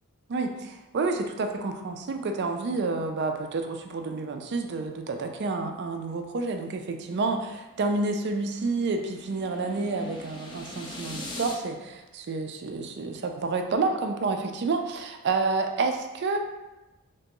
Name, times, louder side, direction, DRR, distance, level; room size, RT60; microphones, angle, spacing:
voice 1, 0.3-16.4, right 3 dB, 50° right, 5 dB, 0.4 m, -29 dB
sound 1, 7.3-11.6, left 1 dB, 20° left, 0.4 m, -42 dB
3.4 x 2.9 x 2.9 m, 1.0 s
head